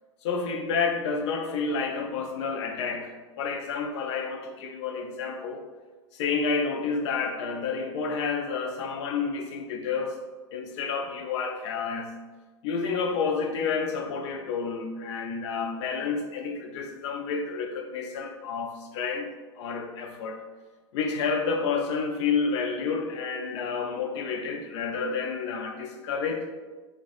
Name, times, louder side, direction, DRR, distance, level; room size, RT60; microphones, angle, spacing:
voice 1, 0.2-5.6 6.2-10.2 10.5-12.1 12.6-19.3 19.6-20.4 20.9-26.4, left 5 dB, 65° left, 3 dB, 0.4 m, -30 dB
2.4 x 2.2 x 2.5 m, 1.3 s
hypercardioid pair, 115°, 16 cm